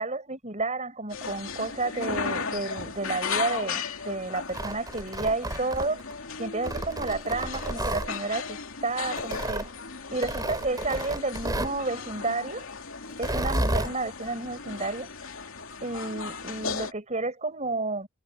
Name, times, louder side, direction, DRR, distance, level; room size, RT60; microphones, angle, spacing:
voice 1, 0.0-6.0 6.4-8.6 8.8-9.7 10.1-12.6 13.2-15.1 15.8-18.1, right 3 dB, 35° right, 7.1 m, -31 dB
sound 1, 1.1-16.9, left 5 dB, 80° left, 2.5 m, -36 dB
Tearing, 4.4-6.1 6.6-8.1 9.2-9.7 10.2-11.8 13.1-13.9, right 1 dB, 20° right, 5.2 m, -31 dB
head